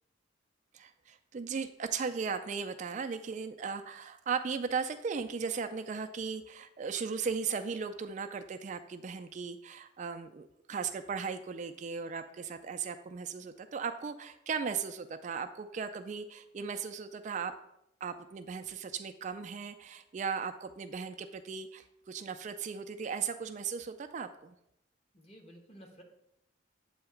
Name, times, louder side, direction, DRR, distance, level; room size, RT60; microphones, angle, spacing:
voice 1, 0.7-17.5 18.0-24.5, right 5 dB, 40° right, 8 dB, 0.3 m, -37 dB
voice 2, 25.1-26.0, equal, 35° left, 2 dB, 1.1 m, -53 dB
7.8 x 2.8 x 5.7 m, 0.79 s
head